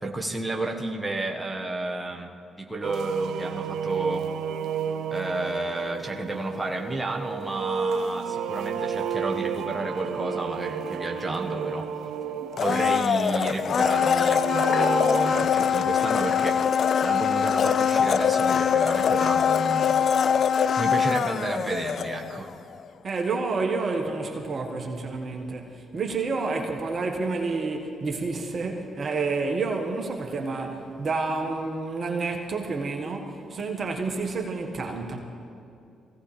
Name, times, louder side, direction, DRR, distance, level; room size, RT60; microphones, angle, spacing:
voice 1, 0.0-2.3 2.6-4.3 5.1-11.9 12.6-16.7 17.0-19.9 20.8-22.5, right 2 dB, 15° right, 1.5 m, -31 dB
sound 1, 2.8-15.4, right 7 dB, 65° right, 0.6 m, -32 dB
Domestic sounds home sounds, 12.5-22.5 22.8-22.9, left 7 dB, 55° left, 0.4 m, -23 dB
voice 2, 23.0-35.2, right 3 dB, 45° right, 1.6 m, -29 dB
23.5 x 16.5 x 3.4 m
hypercardioid pair, 45°, 0 cm